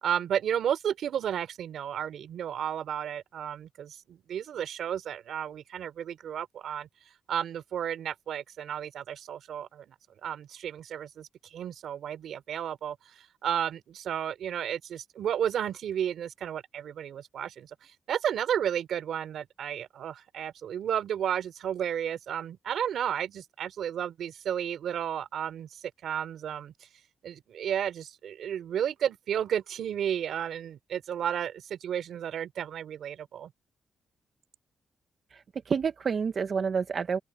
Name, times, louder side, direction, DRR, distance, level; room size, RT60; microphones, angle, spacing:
voice 1, 0.0-6.9 7.3-9.9 10.2-13.0 13.4-26.7 27.2-33.5, right 9 dB, 75° right, 3.0 m, -32 dB
voice 2, 35.3-37.2, right 6 dB, 50° right, 0.8 m, -29 dB
open air
cardioid pair, 115°, 0 cm